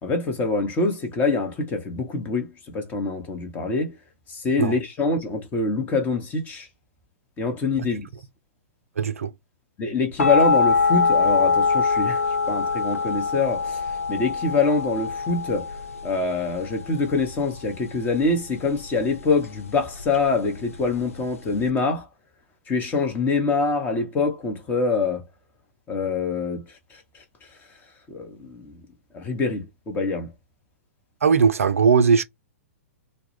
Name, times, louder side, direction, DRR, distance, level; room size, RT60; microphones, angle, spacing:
voice 1, 0.0-3.9 4.3-6.7 7.4-8.1 9.8-15.7 16.0-22.1 22.7-25.2 25.9-26.6 26.9-27.0 28.1-28.8 29.1-30.3, left 3 dB, 20° left, 0.8 m, -25 dB
voice 2, 9.0-9.3 31.2-32.2, right 6 dB, 70° right, 0.4 m, -19 dB
sound 1, 10.2-21.7, left 4 dB, 70° left, 0.5 m, -24 dB
2.2 x 2.0 x 3.0 m
figure-of-eight pair, 110°, 8 cm